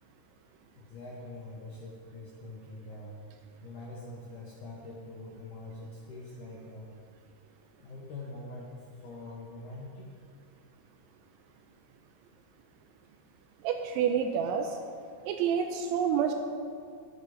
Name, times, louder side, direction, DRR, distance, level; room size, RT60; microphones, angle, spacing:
voice 1, 0.8-3.2 3.6-6.9 7.8-10.2, left 2 dB, 75° left, -4 dB, 1.9 m, -44 dB
voice 2, 13.6-14.8 15.3-16.3, right 7 dB, 80° right, 5 dB, 2.9 m, -28 dB
11.5 x 9.6 x 5.0 m, 2.4 s
omnidirectional pair, 5.6 m